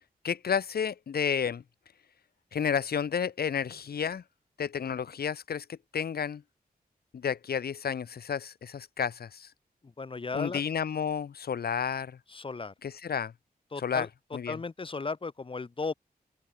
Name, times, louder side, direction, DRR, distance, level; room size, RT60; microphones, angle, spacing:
voice 1, 0.2-1.6 2.5-4.2 4.6-6.4 7.1-9.5 10.3-12.2 12.8-13.3 13.8-14.1 14.3-14.6, left 7 dB, 85° left, 2.0 m, -31 dB
voice 2, 9.8-10.6 12.3-12.7 13.7-14.1 14.5-15.9, left 4 dB, 35° left, 4.6 m, -35 dB
open air
wide cardioid pair, 175°, 16 cm